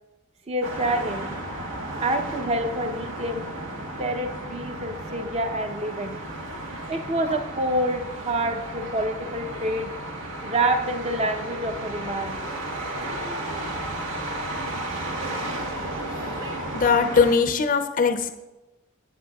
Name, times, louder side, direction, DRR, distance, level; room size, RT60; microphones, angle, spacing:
voice 1, 0.5-1.3 1.9-3.5 4.0-6.2 6.9-10.0 10.4-12.6, right 1 dB, 30° right, 6 dB, 0.7 m, -27 dB
sound 1, 0.6-17.4, right 1 dB, 70° right, 1.2 m, -33 dB
voice 2, 16.7-18.3, left 5 dB, 40° left, 7 dB, 0.5 m, -20 dB
17.0 x 7.8 x 2.3 m, 1.1 s
head